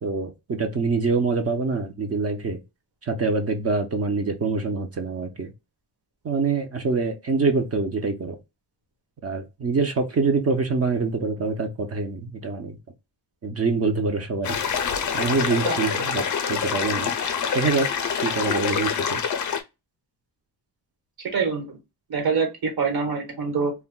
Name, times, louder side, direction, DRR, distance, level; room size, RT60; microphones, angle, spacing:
voice 1, 0.0-2.6 3.0-5.5 6.2-8.4 9.2-12.8 13.4-14.6 15.1-17.1 17.5-17.9 18.2-19.2, right 4 dB, 35° right, 0.4 m, -25 dB
sound 1, 14.4-19.6, left 7 dB, 45° left, 0.5 m, -26 dB
voice 2, 21.3-21.8 22.1-23.7, right 5 dB, 60° right, 1.2 m, -25 dB
2.2 x 2.1 x 3.7 m
wide cardioid pair, 130°, 42 cm